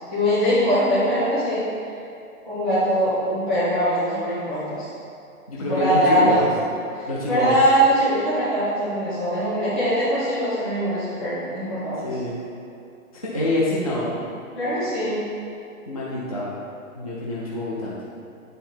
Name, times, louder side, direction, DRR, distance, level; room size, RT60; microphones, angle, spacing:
voice 1, 0.1-2.0 2.4-4.9 5.6-6.5 6.9-12.2 14.5-15.2, equal, ahead, -17 dB, 1.0 m, -22 dB
voice 2, 5.5-6.5 7.1-7.6 12.0-12.4 13.3-14.1 15.9-16.5 16.9-17.9, left 1 dB, 25° left, -7 dB, 0.5 m, -26 dB
8.4 x 3.9 x 4.3 m, 2.5 s
hypercardioid pair, 175°, 44 cm